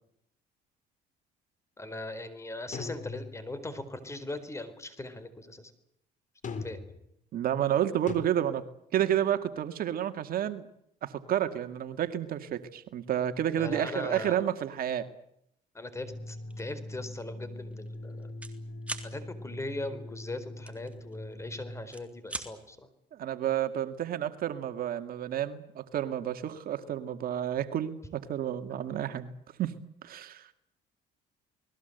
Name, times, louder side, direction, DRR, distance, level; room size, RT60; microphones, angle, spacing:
voice 1, 1.8-5.7 6.6-6.8 13.5-14.4 15.7-18.3 19.0-22.9, left 2 dB, 15° left, 13 dB, 4.3 m, -39 dB
sound 1, 2.7-3.7 6.4-7.1 8.1-8.2, left 5 dB, 50° left, 3.8 m, -39 dB
voice 2, 7.3-8.6 8.9-10.7 11.0-15.1 23.1-29.3 29.6-29.7 30.0-30.5, right 10 dB, 60° right, 9 dB, 2.0 m, -30 dB
sound 2, 16.0-21.8, left 1 dB, 80° left, 6.1 m, -42 dB
sound 3, 16.5-16.7 17.2-17.4 17.6-18.5 18.8-19.1 20.7-21.4 21.8-22.5, right 2 dB, 5° right, 3.5 m, -40 dB
29.5 x 20.5 x 8.1 m, 0.75 s
cardioid pair, 110°, 17 cm